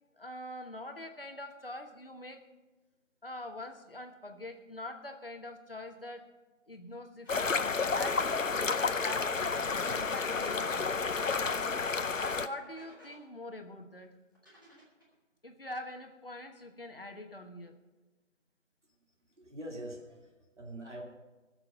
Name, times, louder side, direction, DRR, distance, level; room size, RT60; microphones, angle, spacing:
voice 1, 0.2-2.4 3.2-6.3 6.7-7.5 7.9-11.1 12.2-14.1 15.4-17.8, left 1 dB, 45° left, 5 dB, 1.2 m, -44 dB
sound 1, 7.2-7.4 8.5-9.3 10.0-10.4 11.2-11.9 12.5-13.2 14.3-15.1, right 1 dB, 15° right, 1.7 m, -58 dB
sound 2, 7.3-12.5, left 4 dB, 75° left, 0.8 m, -31 dB
voice 2, 19.2-21.0, right 1 dB, 60° right, 0 dB, 2.4 m, -44 dB
20.5 x 6.9 x 5.0 m, 1.2 s
figure-of-eight pair, 175°, 39 cm